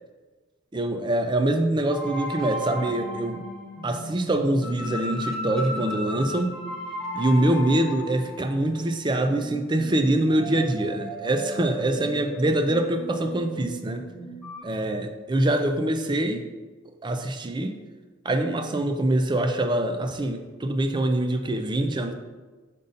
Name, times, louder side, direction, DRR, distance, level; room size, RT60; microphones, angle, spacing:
voice 1, 0.7-3.4 3.8-6.5 7.1-14.0 14.6-16.5 17.0-17.8 18.2-22.1, right 1 dB, 25° right, 6 dB, 0.5 m, -24 dB
sound 1, 1.9-14.6, equal, 5° left, 0.9 m, -35 dB
5.4 x 5.1 x 4.0 m, 1.3 s
head